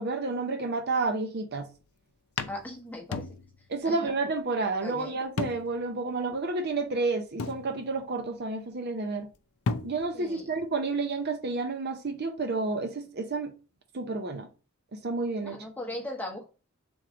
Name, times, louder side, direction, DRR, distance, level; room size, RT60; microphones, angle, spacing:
voice 1, 0.0-1.7 3.7-9.3 9.8-13.6 13.9-14.5 15.0-15.6, right 3 dB, 50° right, 0.6 m, -30 dB
sound 1, 1.6-1.8 2.4-3.8 4.1-4.2 5.4-5.9 6.3-6.4 7.4-8.2 9.3-9.4 9.7-10.3, left 4 dB, 85° left, 0.5 m, -35 dB
voice 2, 2.5-3.3 3.8-4.0 4.8-5.2 10.1-10.5 15.4-16.5, left 1 dB, 10° left, 0.9 m, -38 dB
3.6 x 3.1 x 4.8 m
head